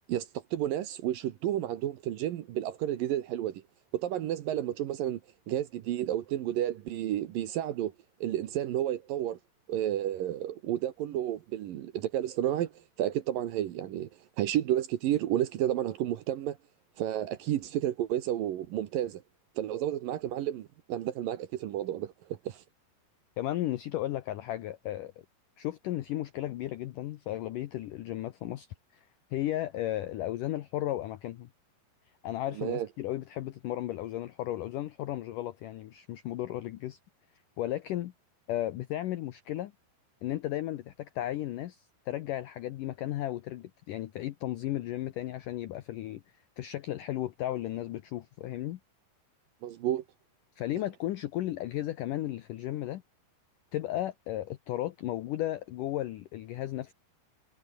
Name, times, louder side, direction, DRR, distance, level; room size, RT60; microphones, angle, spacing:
voice 1, 0.1-3.6 3.9-5.2 5.5-7.9 8.2-9.4 9.7-14.1 14.4-16.6 17.0-19.2 19.6-22.6 32.6-32.9 49.6-50.0, right 12 dB, 70° right, 2.3 m, -31 dB
voice 2, 23.4-25.1 25.6-28.7 28.9-31.5 32.2-37.0 37.6-38.1 38.5-39.7 40.2-46.2 46.6-48.8 50.6-53.0 53.7-56.9, left 14 dB, 85° left, 1.8 m, -34 dB
omnidirectional pair, 5.1 m